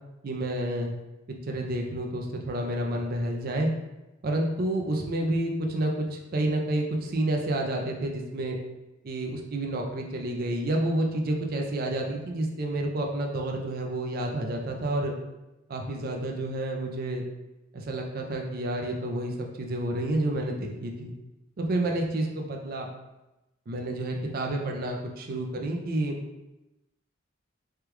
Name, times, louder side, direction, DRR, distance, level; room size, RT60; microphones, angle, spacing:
voice 1, 0.2-0.9 1.4-3.7 4.2-8.6 9.0-15.1 15.7-17.2 17.7-21.1 21.6-22.9 23.7-26.2, right 1 dB, 45° right, 1 dB, 0.4 m, -29 dB
3.4 x 2.3 x 3.0 m, 0.99 s
head